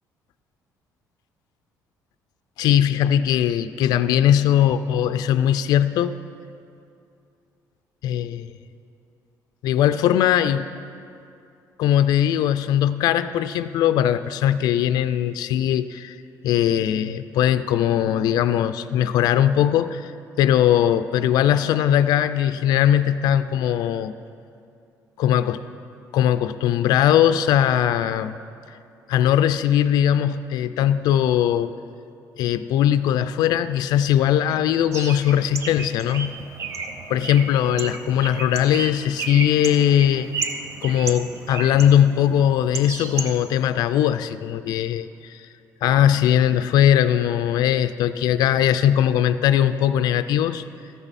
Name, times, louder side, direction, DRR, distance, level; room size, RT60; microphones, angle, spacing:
voice 1, 2.6-6.1 8.0-8.5 9.6-10.7 11.8-16.2 16.4-20.1 20.4-24.1 25.2-25.6 26.1-28.4 29.1-31.7 32.4-36.4 37.1-40.5 40.8-45.5 45.8-50.6, left 10 dB, 75° left, 11 dB, 0.3 m, -20 dB
Bird, 34.9-43.7, right 4 dB, 45° right, 0.7 m, -33 dB
13.5 x 8.9 x 4.1 m, 2.5 s
cardioid pair, 155°, 7 cm